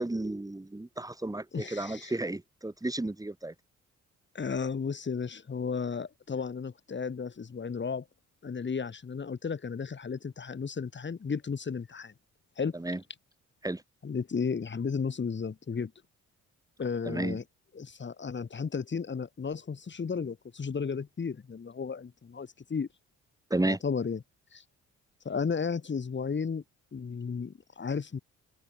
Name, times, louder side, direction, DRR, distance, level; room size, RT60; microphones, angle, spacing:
voice 1, 0.0-3.5 12.7-13.0 13.6-13.8 17.0-17.4 23.5-23.8, right 2 dB, 10° right, 2.9 m, -32 dB
voice 2, 1.5-2.1 4.3-8.0 8.4-12.1 12.6-12.8 14.0-15.9 16.8-17.4 17.7-22.9 23.6-24.2 24.5-24.6 25.2-26.6 26.9-28.2, left 5 dB, 40° left, 6.4 m, -34 dB
cardioid pair, 90°, 30 cm